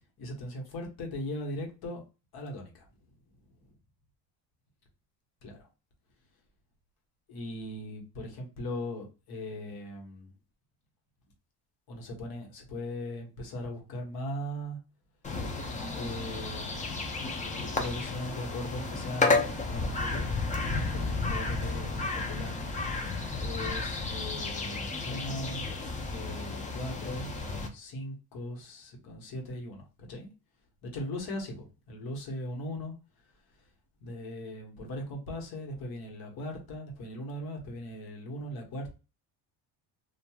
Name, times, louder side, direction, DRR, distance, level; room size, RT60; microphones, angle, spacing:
voice 1, 0.2-2.0 2.3-3.2 3.6-3.7 5.4-5.7 7.3-10.3 11.9-14.8 15.9-16.8 17.8-20.4 20.7-22.6 23.4-25.7 26.1-27.3 27.7-30.3 30.8-32.9 34.0-39.0, left 1 dB, 55° left, 1 dB, 1.2 m, -39 dB
sound 1, 15.2-27.7, left 3 dB, 15° left, 0.5 m, -32 dB
2.9 x 2.5 x 2.3 m, 0.30 s
cardioid pair, 115°, 44 cm